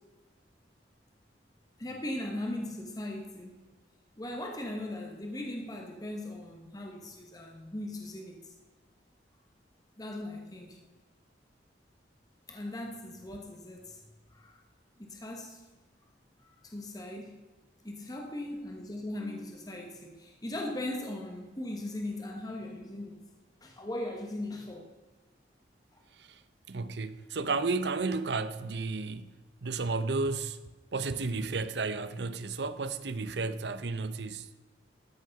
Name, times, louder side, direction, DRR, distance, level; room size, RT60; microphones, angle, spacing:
voice 1, 1.8-3.6 4.2-8.5 10.0-10.8 12.5-14.0 14.3-14.6 15.0-15.6 16.6-17.4 17.8-23.2 23.6-24.9 25.9-26.0, left 1 dB, 20° left, 1.1 m, -39 dB
voice 2, 26.7-29.3 29.6-30.6 30.9-34.5, right 3 dB, 70° right, 0.7 m, -32 dB
13.5 x 6.4 x 5.8 m
head